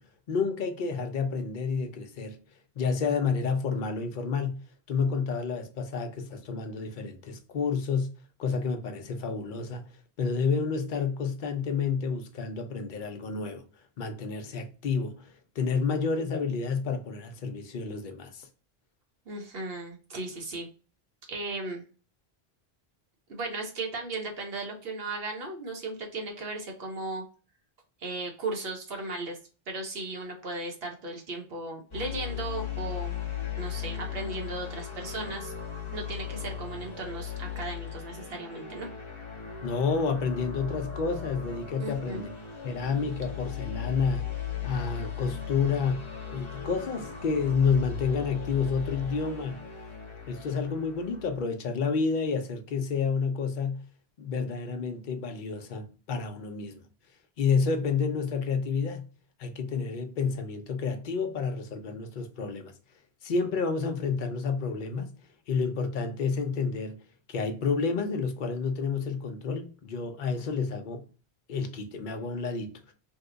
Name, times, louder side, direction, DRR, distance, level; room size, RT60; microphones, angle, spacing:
voice 1, 0.0-2.4 2.8-8.1 8.4-9.8 10.2-13.6 14.0-18.5 39.6-42.3 42.6-49.6 50.3-53.9 54.2-56.8 57.4-59.1 59.4-62.8 63.2-65.1 65.5-67.0 67.3-71.0 71.5-72.9, left 5 dB, 55° left, 0.7 m, -30 dB
voice 2, 19.3-20.7 21.3-21.8 23.3-27.2 28.0-29.4 29.7-33.2 33.6-35.5 35.9-38.9 41.8-42.2, right 2 dB, 70° right, 1.1 m, -36 dB
sound 1, 31.9-51.4, left 9 dB, 30° left, 0.9 m, -37 dB
2.8 x 2.3 x 3.7 m
omnidirectional pair, 1.1 m